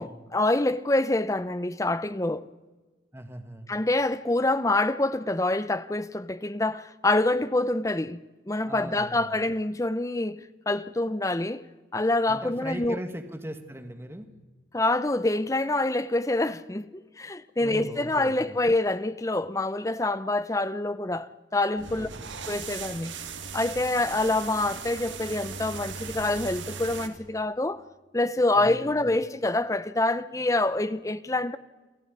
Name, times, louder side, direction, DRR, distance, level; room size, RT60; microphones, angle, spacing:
voice 1, 0.0-2.5 3.7-8.2 8.5-11.6 11.9-13.0 14.7-22.1 22.5-23.1 23.5-27.8 28.1-31.6, left 2 dB, 15° left, 0.6 m, -26 dB
voice 2, 3.1-3.7 8.6-9.3 12.3-14.3 17.6-18.3 22.0-22.3 28.6-29.0, equal, 15° right, 1.7 m, -39 dB
sound 1, 21.8-27.1, right 5 dB, 85° right, 2.1 m, -38 dB
28.0 x 13.0 x 9.8 m
head